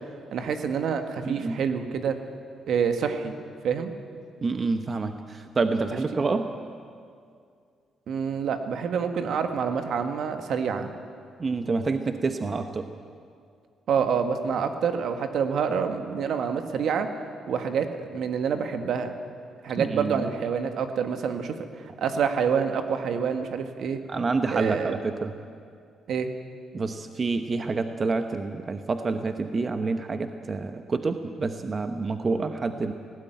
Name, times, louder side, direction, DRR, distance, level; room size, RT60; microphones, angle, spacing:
voice 1, 0.3-2.2 2.7-3.4 3.6-3.9 6.2-6.3 8.1-10.9 13.9-17.1 17.5-19.1 19.6-21.6 22.0-24.0 24.5-25.0 26.1-26.3, right 6 dB, 70° right, 7 dB, 1.8 m, -27 dB
voice 2, 1.2-1.6 4.4-6.5 11.4-12.9 19.8-20.3 24.1-25.3 26.7-32.9, right 3 dB, 35° right, 7 dB, 1.0 m, -28 dB
18.5 x 17.0 x 9.3 m, 2.3 s
cardioid pair, 90°, 0 cm